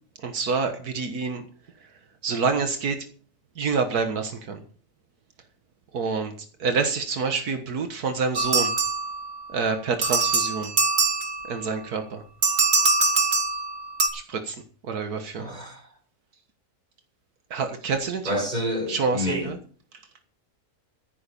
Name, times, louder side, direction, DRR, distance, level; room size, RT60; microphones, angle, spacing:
voice 1, 0.2-1.4 2.2-3.0 3.6-4.6 5.9-6.3 6.6-8.7 9.5-10.7 11.5-12.2 14.1-14.6 14.8-15.5 17.5-18.3 18.9-19.5, right 4 dB, 85° right, 1.9 m, -27 dB
sound 1, 8.4-9.5 10.0-11.7 12.4-14.1, right 3 dB, 55° right, 2.5 m, -23 dB
voice 2, 15.4-15.9 18.2-19.6, equal, 25° right, 4.6 m, -28 dB
14.5 x 9.6 x 5.4 m
omnidirectional pair, 1.6 m